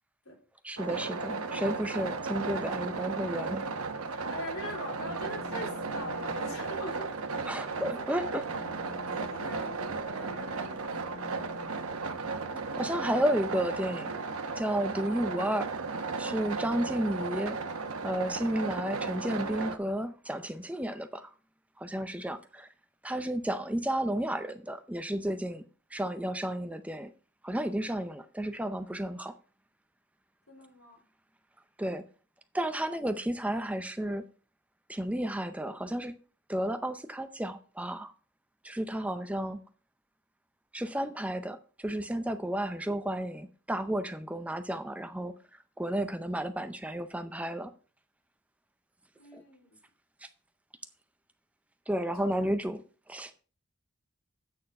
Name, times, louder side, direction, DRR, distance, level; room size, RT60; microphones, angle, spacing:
voice 1, 0.6-3.7 7.5-8.5 12.8-14.1 14.6-15.7 16.2-17.6 18.0-21.3 21.8-22.7 23.0-25.6 25.9-27.1 27.4-29.3 31.8-32.0 32.5-34.2 34.9-36.1 36.5-38.1 38.6-39.6 40.7-45.3 45.8-47.7 49.3-49.4 50.2-50.3 51.9-52.8 53.1-53.4, right 1 dB, 5° right, 0.5 m, -32 dB
sound 1, 0.8-19.8, right 4 dB, 85° right, 1.0 m, -35 dB
sound 2, 2.4-12.9, left 2 dB, 40° left, 4.6 m, -51 dB
voice 2, 4.1-7.1 7.5-7.9 8.2-8.4 8.9-11.3 12.3-12.7 30.5-31.0 49.1-49.8 52.1-52.5, left 1 dB, 80° left, 3.3 m, -43 dB
8.8 x 6.5 x 5.3 m
head